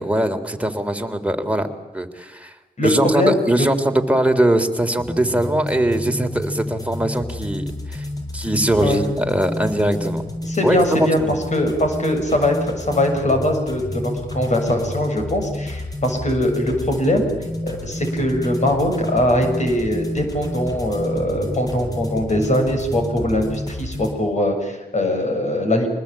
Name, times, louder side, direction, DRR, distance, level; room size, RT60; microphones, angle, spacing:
voice 1, 0.0-1.7 1.9-2.5 2.8-8.0 8.3-10.2 10.6-10.8 11.2-11.3, right 1 dB, 10° right, 5 dB, 3.3 m, -21 dB
voice 2, 2.8-3.7 8.8-9.0 10.4-17.3 17.6-25.9, left 1 dB, 45° left, 4 dB, 7.0 m, -21 dB
sound 1, 5.0-24.1, left 1 dB, 20° left, 7.8 m, -30 dB
25.5 x 20.0 x 8.8 m, 1.1 s
cardioid pair, 60°, 16 cm